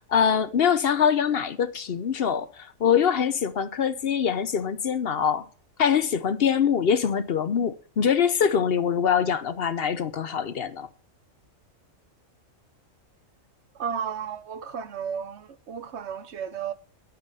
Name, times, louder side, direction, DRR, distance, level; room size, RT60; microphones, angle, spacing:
voice 1, 0.0-5.4 5.8-10.9, left 7 dB, 55° left, 0.9 m, -24 dB
voice 2, 13.7-16.7, right 7 dB, 60° right, 1.0 m, -33 dB
12.0 x 5.5 x 6.7 m
omnidirectional pair, 1.4 m